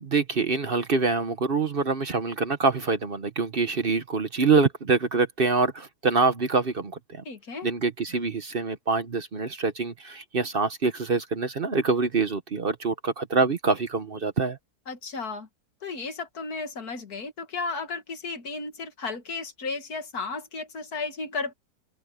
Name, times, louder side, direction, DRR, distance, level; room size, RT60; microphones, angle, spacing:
voice 1, 0.0-7.2 7.6-14.6, right 4 dB, 40° right, 1.1 m, -25 dB
voice 2, 7.3-7.7 14.9-15.5 15.8-21.5, left 4 dB, 80° left, 2.4 m, -34 dB
omnidirectional pair, 1.6 m